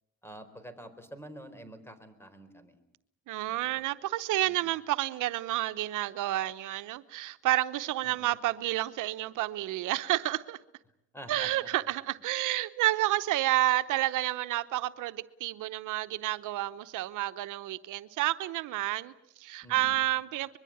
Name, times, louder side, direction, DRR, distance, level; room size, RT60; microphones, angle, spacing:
voice 1, 0.2-2.8 3.5-3.8 4.4-4.7 8.0-8.3 11.1-11.5 19.6-20.1, right 1 dB, 10° left, 12 dB, 4.3 m, -48 dB
voice 2, 3.3-10.6 11.3-20.6, right 16 dB, 90° right, 12 dB, 0.9 m, -30 dB
24.5 x 22.0 x 8.6 m, 0.83 s
cardioid pair, 90°, 30 cm